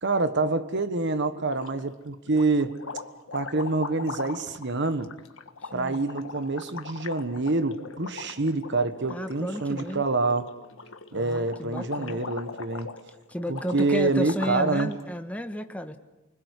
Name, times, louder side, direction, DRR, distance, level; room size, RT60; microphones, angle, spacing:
voice 1, 0.0-2.8 3.3-5.1 5.7-10.5 11.1-12.9 13.5-15.0, right 3 dB, 60° right, 1.4 m, -26 dB
sound 1, 1.3-2.0 2.3-15.0, left 4 dB, 70° left, 1.6 m, -40 dB
voice 2, 5.6-6.0 9.1-10.0 11.1-12.2 13.3-16.0, equal, 5° left, 1.3 m, -33 dB
29.0 x 21.0 x 8.4 m
head